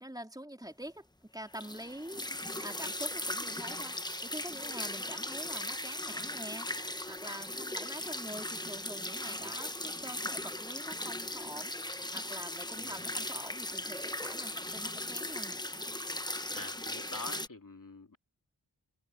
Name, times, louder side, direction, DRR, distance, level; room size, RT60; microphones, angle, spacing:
voice 1, 0.0-6.7 7.1-15.6, equal, 10° right, 3.4 m, -46 dB
sound 1, 1.5-17.5, left 1 dB, 10° left, 1.0 m, -38 dB
voice 2, 12.8-13.1 16.5-18.2, left 2 dB, 55° left, 2.9 m, -45 dB
wide cardioid pair, 50°, 39 cm